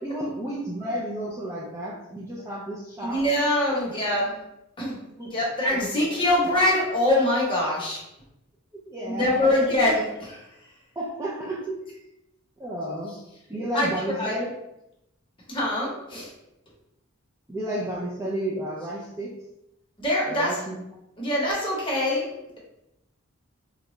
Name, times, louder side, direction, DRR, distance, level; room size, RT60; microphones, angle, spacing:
voice 1, 0.0-3.2 3.8-4.0 5.2-6.0 8.7-9.8 11.0-11.8 12.6-13.1 13.5-14.5 17.5-19.3 20.3-20.8, right 1 dB, 15° right, -5 dB, 0.4 m, -32 dB
voice 2, 3.0-4.3 4.8-5.0 5.2-8.0 9.0-10.4 13.7-14.3 15.5-16.3 20.0-20.6 21.2-22.3, left 1 dB, 25° left, -4 dB, 0.9 m, -24 dB
3.7 x 2.2 x 3.1 m, 0.87 s
head